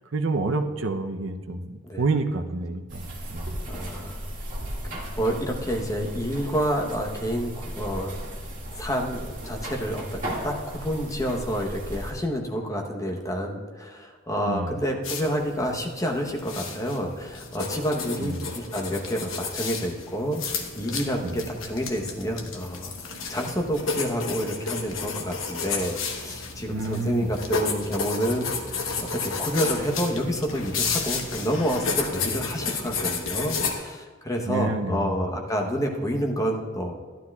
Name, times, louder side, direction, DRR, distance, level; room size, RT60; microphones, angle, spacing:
voice 1, 0.1-3.5 14.5-14.8 18.2-18.5 21.2-21.4 26.7-27.3 34.5-35.3, right 3 dB, 65° right, 7 dB, 0.7 m, -28 dB
sound 1, 2.9-12.1, equal, 40° right, 2.0 m, -36 dB
voice 2, 3.7-4.3 4.9-8.2 8.7-28.9 29.2-36.9, equal, 15° left, 1 dB, 0.9 m, -29 dB
sound 2, 15.0-33.7, left 4 dB, 65° left, 1.0 m, -32 dB
12.0 x 11.5 x 2.3 m, 1.5 s
head